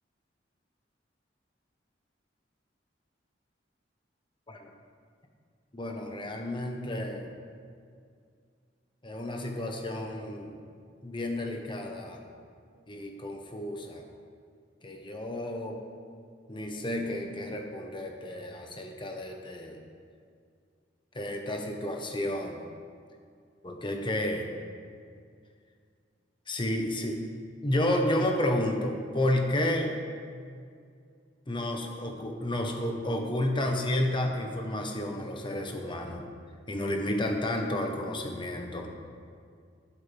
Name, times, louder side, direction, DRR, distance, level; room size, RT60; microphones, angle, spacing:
voice 1, 5.7-7.3 9.0-10.6 11.0-12.2 12.9-14.0 14.8-15.8 16.5-19.8 21.1-22.6 23.6-24.5 26.5-27.2 27.6-29.9 31.5-36.3 36.7-39.0, left 1 dB, 25° left, 2 dB, 1.2 m, -31 dB
12.0 x 11.0 x 3.5 m, 2.2 s
head